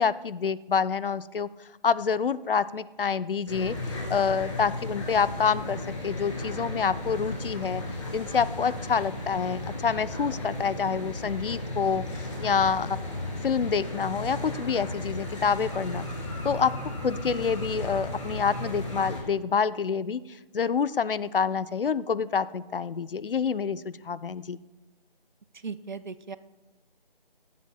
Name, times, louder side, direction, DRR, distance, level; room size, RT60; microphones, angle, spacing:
voice 1, 0.0-7.8 8.1-13.0 13.4-16.0 16.4-24.6, left 6 dB, 70° left, 18 dB, 0.4 m, -27 dB
sound 1, 3.5-19.2, left 1 dB, 35° left, 2.4 m, -35 dB
voice 2, 25.6-26.4, right 5 dB, 55° right, 15 dB, 0.4 m, -37 dB
19.0 x 7.3 x 2.3 m, 1.1 s
figure-of-eight pair, 165°, 29 cm